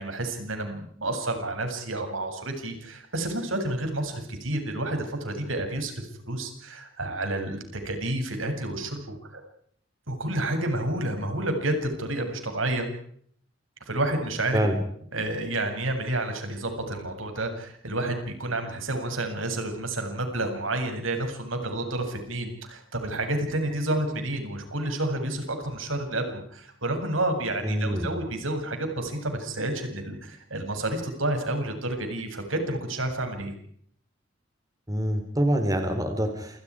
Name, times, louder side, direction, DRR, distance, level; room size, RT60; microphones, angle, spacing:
voice 1, 0.0-9.4 10.1-12.9 13.9-14.6 15.1-33.5, right 1 dB, 80° right, 5 dB, 7.7 m, -30 dB
voice 2, 27.6-28.1 34.9-36.6, equal, 20° right, 6 dB, 3.7 m, -26 dB
29.0 x 29.0 x 5.0 m, 0.64 s
head